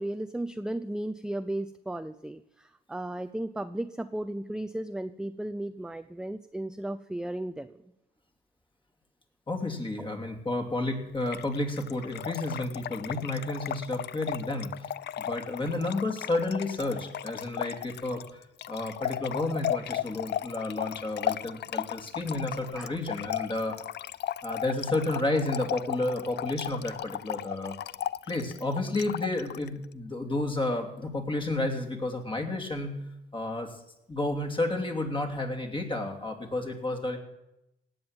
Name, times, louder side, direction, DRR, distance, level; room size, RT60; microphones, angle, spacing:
voice 1, 0.0-7.8 22.7-22.9, right 1 dB, 5° right, 10 dB, 0.5 m, -35 dB
voice 2, 9.5-14.9 15.2-18.4 18.7-23.7 24.4-33.0 33.3-33.8 34.1-37.2, left 2 dB, 25° left, 4 dB, 2.9 m, -31 dB
Trickle dribble / Fill (with liquid), 11.2-29.7, left 11 dB, 60° left, 0.5 m, -36 dB
17.5 x 7.9 x 8.9 m, 0.89 s
cardioid pair, 90°, 20 cm